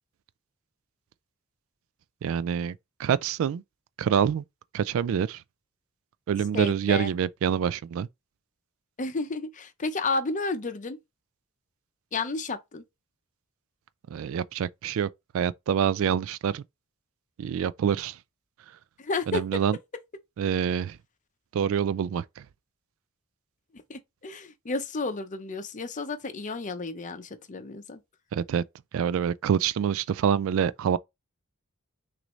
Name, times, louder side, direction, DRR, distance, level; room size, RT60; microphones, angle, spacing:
voice 1, 2.2-2.7 3.0-3.6 4.0-4.4 4.7-5.4 6.3-8.1 14.1-15.1 15.3-16.6 17.4-18.2 19.3-19.8 20.4-21.0 21.5-22.4 28.3-28.6 28.9-31.0, right 8 dB, 65° right, 0.3 m, -26 dB
voice 2, 6.5-7.1 9.0-11.0 12.1-12.8 19.0-19.6 23.9-28.0, left 3 dB, 35° left, 0.6 m, -32 dB
6.1 x 2.6 x 3.1 m
head